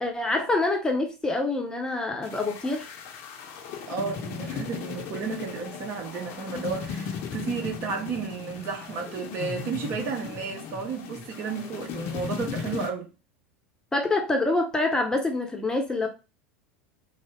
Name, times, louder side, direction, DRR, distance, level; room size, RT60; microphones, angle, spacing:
voice 1, 0.0-2.9 13.9-16.1, left 2 dB, 10° left, 0.8 m, -26 dB
sound 1, 2.2-12.9, left 6 dB, 45° left, 0.7 m, -37 dB
voice 2, 3.9-13.1, right 5 dB, 45° right, 1.0 m, -33 dB
3.8 x 2.1 x 3.6 m
figure-of-eight pair, 80°, 6 cm